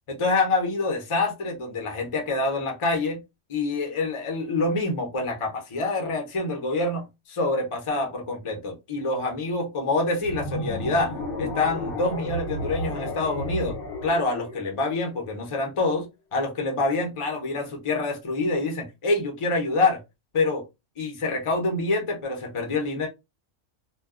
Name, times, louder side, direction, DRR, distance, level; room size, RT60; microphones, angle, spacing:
voice 1, 0.1-3.2 3.5-13.8 14.0-20.0 20.3-20.6 21.0-23.1, left 3 dB, 30° left, 0.7 m, -26 dB
sound 1, 10.2-15.4, left 1 dB, 50° left, 1.0 m, -33 dB
2.3 x 2.2 x 3.5 m
omnidirectional pair, 1.3 m